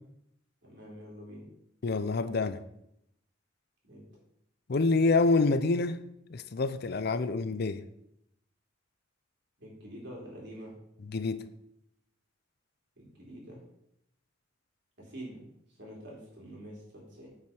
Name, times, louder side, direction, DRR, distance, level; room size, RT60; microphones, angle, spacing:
voice 1, 0.6-1.5 3.8-4.0 9.6-10.7 13.0-13.6 15.0-17.3, equal, 60° right, 3.6 m, -46 dB
voice 2, 1.8-2.6 4.7-6.0 6.3-7.8 11.1-11.4, left 3 dB, 55° left, 0.5 m, -27 dB
8.7 x 4.9 x 6.0 m
head